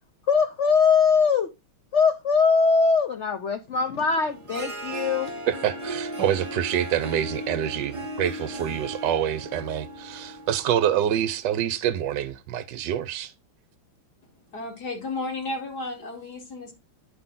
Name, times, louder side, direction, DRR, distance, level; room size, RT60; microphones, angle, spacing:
voice 1, 0.3-1.5 1.9-5.3, left 5 dB, 75° left, 0.6 m, -21 dB
Harp, 4.2-11.3, right 1 dB, 20° right, 1.1 m, -36 dB
voice 2, 5.5-13.3, right 10 dB, 70° right, 1.2 m, -26 dB
voice 3, 14.5-16.7, left 2 dB, 55° left, 2.6 m, -33 dB
9.2 x 5.7 x 3.7 m
omnidirectional pair, 2.2 m